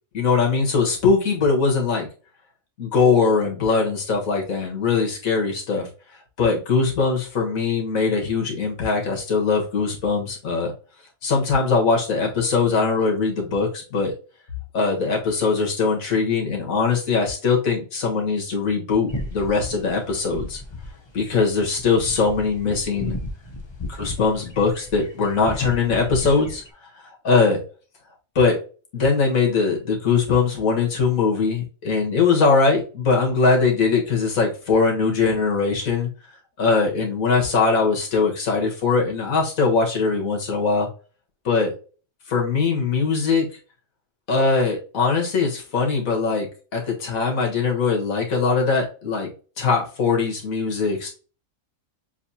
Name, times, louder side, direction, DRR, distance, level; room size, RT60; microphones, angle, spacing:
voice 1, 0.1-2.1 2.8-5.9 6.4-10.7 11.2-14.1 14.7-20.6 21.1-23.2 23.8-26.6 27.2-27.6 28.4-28.6 28.9-36.1 36.6-40.9 41.5-41.7 42.3-43.5 44.3-46.5 46.7-49.3 49.6-51.1, left 4 dB, 75° left, 0 dB, 1.8 m, -21 dB
sound 1, 19.1-26.7, left 1 dB, 40° left, 0.4 m, -35 dB
7.0 x 2.8 x 2.7 m, 0.36 s
omnidirectional pair, 1.5 m